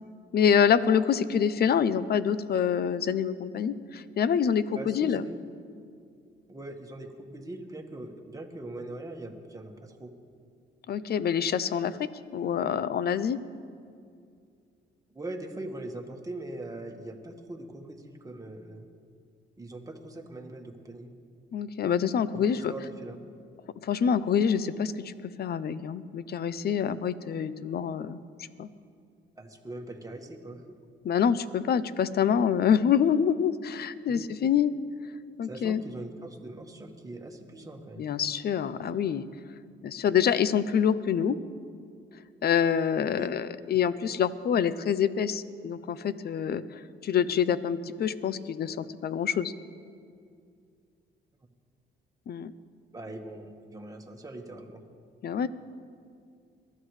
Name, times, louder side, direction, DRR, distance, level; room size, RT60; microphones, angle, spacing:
voice 1, 0.3-5.3 10.9-11.9 12.3-13.4 21.5-22.7 23.8-25.1 25.4-28.2 28.6-28.7 31.0-34.7 35.4-35.8 38.0-39.2 39.8-41.4 42.4-49.5 52.3-52.5 55.2-55.5, left 8 dB, 55° left, 15 dB, 0.6 m, -26 dB
voice 2, 4.7-5.4 6.5-10.1 15.1-18.9 19.6-21.1 22.3-23.2 29.4-30.6 34.1-34.3 35.4-38.1 43.1-43.3 52.9-54.8, right 2 dB, 15° right, 3 dB, 1.6 m, -41 dB
22.5 x 13.0 x 3.3 m, 2.3 s
cardioid pair, 90°, 20 cm